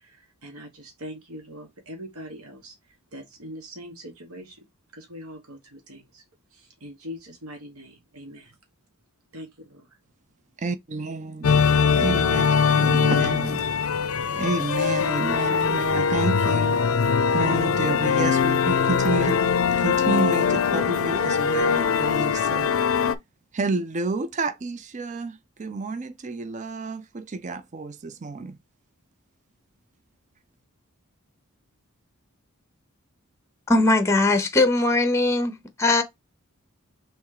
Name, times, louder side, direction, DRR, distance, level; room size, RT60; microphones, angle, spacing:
voice 1, 0.0-2.7 3.1-4.6 4.9-6.2 6.5-8.5 9.3-9.9, equal, 80° right, 1.3 m, -42 dB
voice 2, 10.6-11.5 11.9-12.4 12.7-13.6 14.4-19.4 19.8-23.0 23.5-28.6, right 3 dB, 35° right, 0.5 m, -30 dB
sound 1, 11.4-23.1, left 6 dB, 65° left, 0.5 m, -22 dB
voice 3, 33.7-36.0, left 2 dB, 15° left, 0.7 m, -20 dB
3.5 x 3.1 x 4.8 m
head